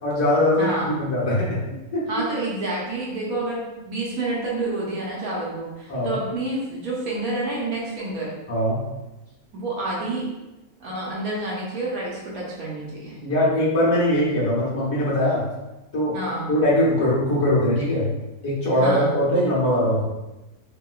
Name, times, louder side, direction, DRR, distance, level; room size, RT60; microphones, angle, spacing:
voice 1, 0.0-1.6 1.9-2.1 5.9-6.2 8.5-8.8 13.2-15.5 15.9-16.1 16.5-18.1 18.4-20.0, left 1 dB, 55° left, -7 dB, 1.1 m, -21 dB
voice 2, 0.6-0.9 2.1-8.3 9.5-10.3 10.8-13.2 16.1-16.5 18.7-19.1, right 2 dB, 80° right, -4 dB, 1.3 m, -28 dB
2.9 x 2.8 x 2.3 m, 1.0 s
omnidirectional pair, 1.5 m